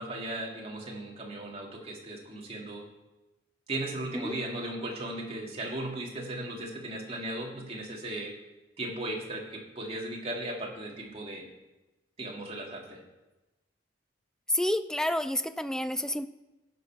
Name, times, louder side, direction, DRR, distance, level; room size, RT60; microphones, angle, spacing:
voice 1, 0.0-2.9 3.7-8.3 8.8-11.5 12.2-13.0, right 1 dB, 35° right, -2 dB, 2.2 m, -37 dB
voice 2, 14.5-16.3, left 1 dB, 5° left, 11 dB, 0.3 m, -29 dB
15.5 x 5.3 x 6.0 m, 1.1 s
head